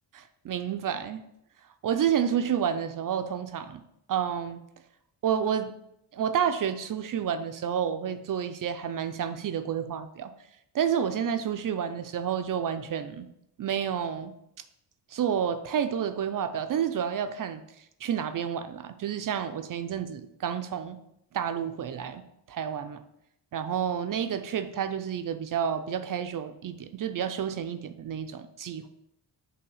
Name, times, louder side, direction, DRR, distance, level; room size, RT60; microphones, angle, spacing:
voice 1, 0.2-1.2 1.8-3.8 4.1-4.6 5.2-5.7 6.1-10.3 10.7-13.3 13.6-14.3 15.1-17.6 18.0-21.0 21.3-22.2 22.5-23.0 23.5-28.9, right 8 dB, 50° right, 10 dB, 0.4 m, -30 dB
5.6 x 3.5 x 5.4 m, 0.78 s
wide cardioid pair, 155°, 42 cm